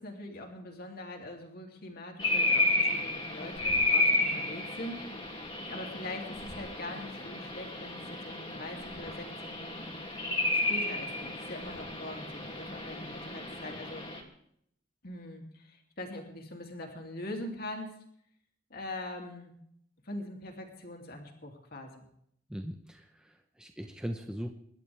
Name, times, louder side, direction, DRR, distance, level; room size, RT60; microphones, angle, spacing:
voice 1, 0.0-5.1 5.6-10.0 10.5-14.1 15.0-17.9 18.7-19.5 20.0-22.1, left 1 dB, 50° left, 2 dB, 2.9 m, -42 dB
sound 1, 2.2-14.2, left 2 dB, 25° left, 2.7 m, -32 dB
voice 2, 22.5-24.5, equal, 5° right, 4 dB, 1.0 m, -39 dB
26.0 x 12.0 x 3.5 m, 0.69 s
head